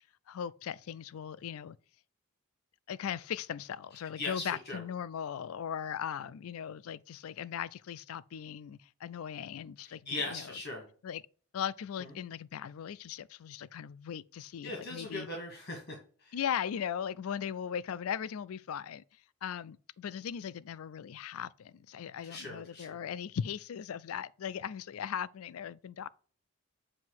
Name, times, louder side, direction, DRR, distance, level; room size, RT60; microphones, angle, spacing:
voice 1, 0.3-1.8 2.9-10.5 11.0-11.2 11.5-15.3 16.3-26.1, left 8 dB, 80° left, 0.4 m, -38 dB
voice 2, 4.2-4.8 10.0-10.8 12.0-12.1 14.6-16.4 22.2-23.0, left 2 dB, 50° left, 1.6 m, -39 dB
7.5 x 2.7 x 5.8 m
head